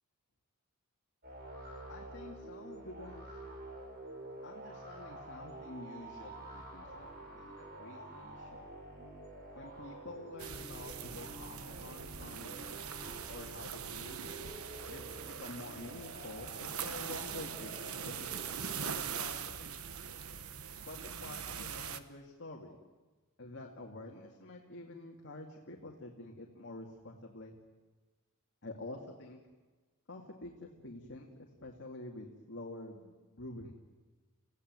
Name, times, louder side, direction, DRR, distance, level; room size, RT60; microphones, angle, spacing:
sound 1, 1.2-19.6, right 1 dB, 45° right, 6.8 m, -49 dB
voice 1, 1.9-3.3 4.4-8.7 9.5-12.6 13.3-14.2 14.9-18.3 18.8-19.7 20.9-22.8 23.4-27.6 28.6-29.4 30.1-33.7, left 2 dB, 55° left, 0 dB, 2.5 m, -48 dB
sound 2, 10.4-22.0, right 7 dB, 70° right, 1.3 m, -42 dB
29.5 x 16.5 x 9.6 m, 1.3 s
head